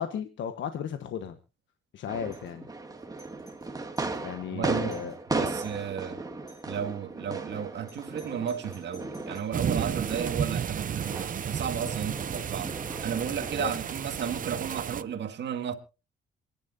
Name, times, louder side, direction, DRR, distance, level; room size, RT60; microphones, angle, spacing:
voice 1, 0.0-1.4 1.9-2.7 4.2-5.1 13.6-13.7, left 8 dB, 70° left, 1.2 m, -35 dB
sound 1, 2.1-14.3, right 3 dB, 20° right, 1.8 m, -37 dB
Doorbell, 2.3-2.6 3.0-4.2 4.6-4.7 4.9-5.2 5.6-5.9 6.5-6.8 7.9-9.6, left 1 dB, 20° left, 8.0 m, -57 dB
voice 2, 4.5-5.0 5.3-6.2 6.7-12.7 13.0-15.8, right 8 dB, 60° right, 1.9 m, -33 dB
sound 2, 9.5-15.0, right 8 dB, 45° right, 0.7 m, -32 dB
27.5 x 10.5 x 2.7 m
cardioid pair, 90°, 20 cm